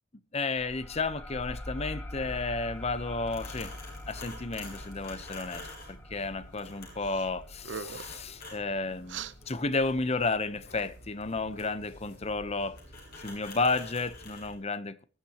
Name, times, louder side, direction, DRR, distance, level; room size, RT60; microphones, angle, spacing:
voice 1, 0.3-3.7 4.1-12.8 13.2-15.0, left 3 dB, 35° left, 0.9 m, -32 dB
sound 1, 0.6-9.8, left 1 dB, 10° left, 1.2 m, -44 dB
sound 2, 2.2-14.5, left 1 dB, 55° left, 7.6 m, -48 dB
sound 3, 7.0-7.3 7.6-8.2 9.1-9.3, right 6 dB, 80° right, 0.8 m, -40 dB
22.0 x 11.5 x 3.0 m
head